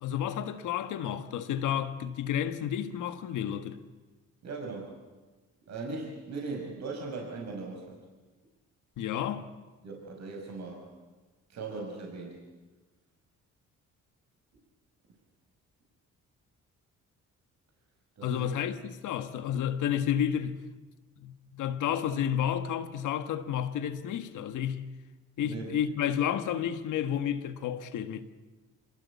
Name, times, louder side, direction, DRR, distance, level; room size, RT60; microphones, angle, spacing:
voice 1, 0.0-3.8 9.0-9.4 18.2-20.6 21.2-24.9 25.4-28.2, left 9 dB, 80° left, 1.6 m, -31 dB
voice 2, 4.4-5.0 5.7-8.0 9.8-10.9 11.5-12.4 18.2-18.5 25.4-25.6, right 3 dB, 60° right, 5.5 m, -39 dB
26.0 x 21.5 x 8.4 m
cardioid pair, 90°, 30 cm